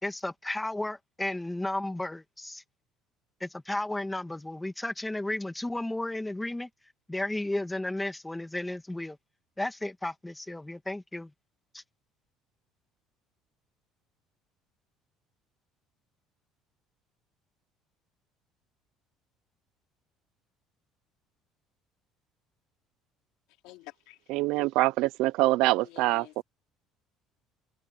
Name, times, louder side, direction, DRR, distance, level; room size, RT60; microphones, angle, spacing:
voice 1, 0.0-2.6 3.4-6.7 7.1-9.2 9.6-11.3 11.7-11.8, left 1 dB, 5° left, 2.4 m, -33 dB
voice 2, 23.6-24.4 25.8-26.4, left 19 dB, 80° left, 3.5 m, -49 dB
voice 3, 24.3-26.4, right 19 dB, 75° right, 0.6 m, -25 dB
cardioid pair, 140°, 0 cm